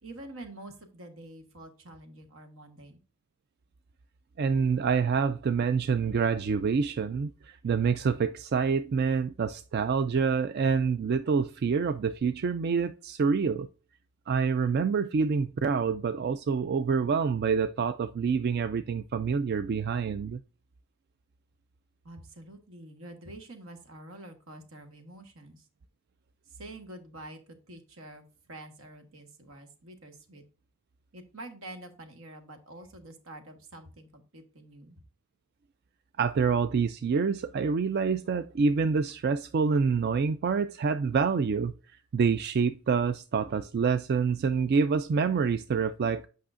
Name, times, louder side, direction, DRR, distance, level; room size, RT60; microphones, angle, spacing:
voice 1, 0.0-3.0 22.0-25.7 26.5-30.4 31.1-35.0, right 1 dB, 80° right, 1.4 m, -47 dB
voice 2, 4.4-13.7 14.3-20.4 36.2-41.7 42.1-46.2, right 5 dB, 50° right, 0.3 m, -27 dB
8.6 x 5.5 x 2.5 m
head